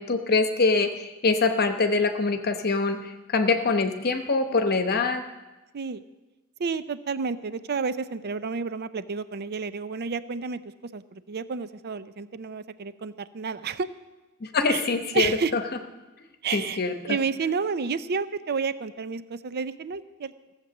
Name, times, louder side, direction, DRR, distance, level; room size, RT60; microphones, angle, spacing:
voice 1, 0.0-5.2 14.4-15.6 16.5-17.2, left 3 dB, 45° left, 7 dB, 0.9 m, -24 dB
voice 2, 6.6-10.6 10.9-13.9 14.7-14.9 15.1-15.5 16.4-20.3, right 5 dB, 50° right, 14 dB, 0.5 m, -30 dB
16.0 x 7.4 x 7.0 m, 1.1 s
head